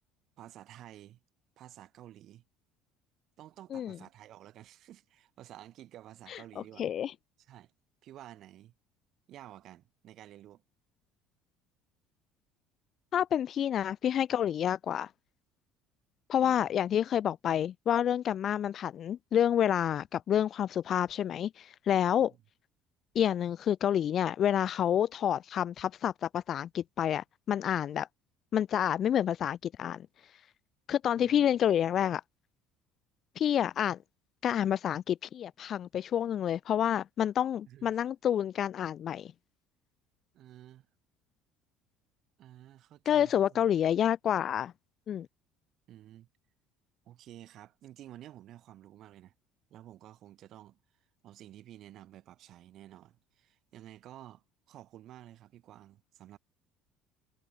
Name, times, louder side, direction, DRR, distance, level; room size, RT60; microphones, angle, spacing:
voice 1, 0.4-1.2 1.6-2.4 3.4-6.9 7.5-7.7 8.0-8.7 9.3-10.6 16.4-16.7 22.2-22.4 31.1-31.5 37.6-37.9 40.3-40.9 42.4-43.7 45.9-46.3 47.1-49.3 49.7-50.8 51.2-56.4, right 13 dB, 40° right, 7.1 m, -52 dB
voice 2, 6.3-7.1 13.1-15.1 16.3-22.3 23.2-28.1 28.5-30.1 30.9-32.2 33.4-34.0 34.4-39.3 43.1-44.7 45.1-45.3, left 10 dB, 30° left, 1.9 m, -29 dB
cardioid pair, 175°, 0 cm